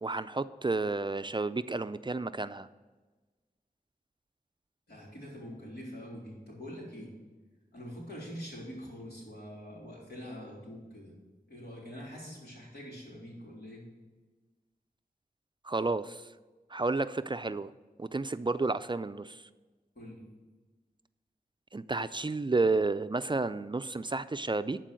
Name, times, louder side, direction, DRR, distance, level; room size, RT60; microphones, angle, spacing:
voice 1, 0.0-2.7 15.6-16.3 16.7-17.7 18.0-19.4 21.7-24.8, right 3 dB, 30° right, 12 dB, 0.4 m, -31 dB
voice 2, 4.9-7.1 7.7-11.1 11.5-13.9 20.0-20.3, equal, 80° left, -4 dB, 3.5 m, -44 dB
11.5 x 4.6 x 7.6 m, 1.3 s
wide cardioid pair, 50°, 16 cm